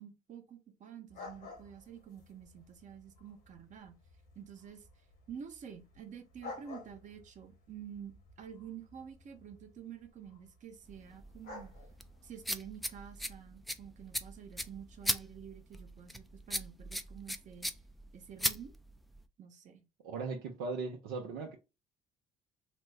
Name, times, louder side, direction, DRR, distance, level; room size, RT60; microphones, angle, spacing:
voice 1, 0.0-4.0 4.3-4.9 5.3-11.7 12.2-17.7 18.1-18.7 19.4-19.8, right 8 dB, 50° right, 0.9 m, -49 dB
sound 1, 1.1-13.3, left 3 dB, 65° left, 1.2 m, -53 dB
sound 2, 10.9-19.3, equal, ahead, 0.4 m, -39 dB
voice 2, 20.0-21.6, right 4 dB, 75° right, 0.6 m, -38 dB
2.9 x 2.1 x 3.3 m
hypercardioid pair, 55°, 16 cm